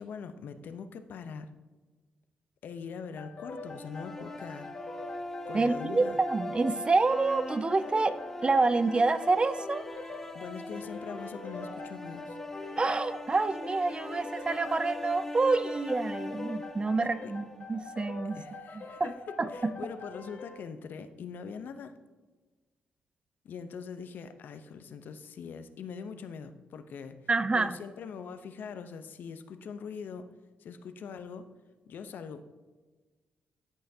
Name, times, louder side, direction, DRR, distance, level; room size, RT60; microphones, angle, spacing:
voice 1, 0.0-1.5 2.6-4.7 5.5-6.2 10.3-12.4 17.2-17.3 18.3-19.1 19.5-21.9 23.4-27.3 27.5-30.3 30.6-31.4 31.9-32.4, left 6 dB, 70° left, 10 dB, 0.7 m, -42 dB
sound 1, 3.2-20.6, left 3 dB, 55° left, 2.4 m, -44 dB
sound 2, 3.6-17.8, left 1 dB, 10° left, 0.9 m, -42 dB
voice 2, 5.5-9.8 12.8-18.4 18.7-19.1 19.4-19.7 27.3-27.8, right 3 dB, 30° right, 14 dB, 0.5 m, -27 dB
13.5 x 5.6 x 2.7 m, 1.3 s
supercardioid pair, 60°, 3 cm